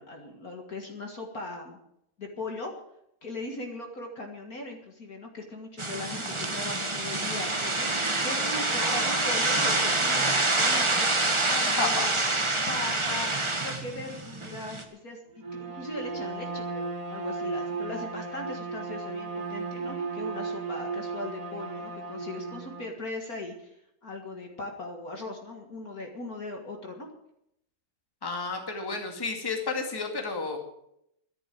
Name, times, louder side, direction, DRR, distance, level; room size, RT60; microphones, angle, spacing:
voice 1, 0.0-1.8 2.2-2.7 3.2-6.2 6.5-11.2 11.5-12.2 12.7-13.3 13.6-23.8 24.0-27.1, left 2 dB, 45° left, 2 dB, 2.2 m, -39 dB
sound 1, 5.8-14.8, right 2 dB, 20° right, 1.0 m, -27 dB
voice 2, 8.8-9.7 11.8-12.1 28.2-30.6, left 3 dB, 10° left, 2 dB, 2.0 m, -32 dB
Bowed string instrument, 15.4-22.9, right 3 dB, 45° right, 1.7 m, -35 dB
13.0 x 11.0 x 7.6 m, 0.77 s
omnidirectional pair, 2.3 m